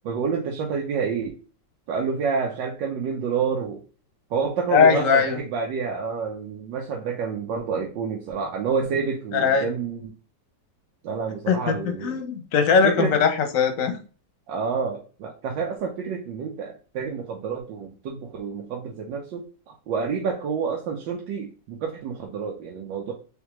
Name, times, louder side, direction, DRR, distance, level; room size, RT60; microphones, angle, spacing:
voice 1, 0.0-1.4 1.9-3.8 4.3-10.1 11.0-12.2 12.8-13.2 14.5-23.1, right 5 dB, 85° right, 1 dB, 1.4 m, -28 dB
voice 2, 4.7-5.4 9.3-9.7 11.5-11.8 12.0-14.0, left 6 dB, 60° left, 5 dB, 0.9 m, -20 dB
3.6 x 3.5 x 3.0 m, 0.37 s
omnidirectional pair, 2.0 m